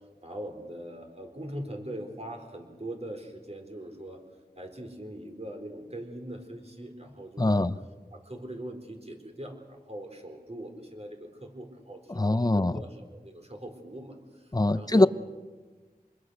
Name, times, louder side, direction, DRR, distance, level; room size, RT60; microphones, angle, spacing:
voice 1, 0.2-4.2 4.5-7.7 8.1-15.1, right 1 dB, 40° right, 4.3 m, -41 dB
voice 2, 7.4-7.7 12.1-12.8 14.5-15.1, left 2 dB, 25° left, 0.7 m, -22 dB
26.5 x 21.5 x 6.5 m
wide cardioid pair, 50°, 16 cm